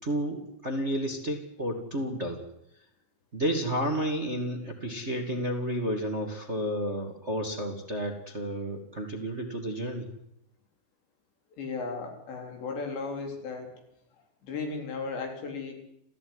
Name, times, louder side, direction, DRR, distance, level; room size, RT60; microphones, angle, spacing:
voice 1, 0.0-2.4 3.3-10.1, equal, 25° right, 4 dB, 1.5 m, -31 dB
voice 2, 11.6-13.8 14.4-15.7, left 4 dB, 75° left, 3 dB, 6.2 m, -35 dB
28.0 x 16.0 x 9.7 m, 0.80 s
omnidirectional pair, 5.1 m